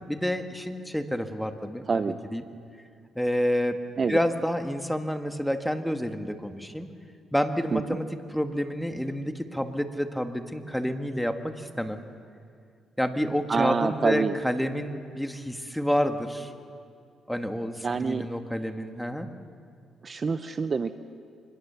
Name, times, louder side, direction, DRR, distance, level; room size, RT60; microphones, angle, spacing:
voice 1, 0.0-2.4 3.1-3.8 4.1-6.9 7.3-12.0 13.0-16.5 17.3-19.3, equal, ahead, 6 dB, 1.7 m, -29 dB
voice 2, 1.9-2.2 4.0-4.2 7.7-7.8 13.5-14.4 17.8-18.3 20.0-20.9, right 5 dB, 35° right, 11 dB, 0.7 m, -26 dB
25.0 x 22.0 x 6.9 m, 2.3 s
cardioid pair, 90°, 0 cm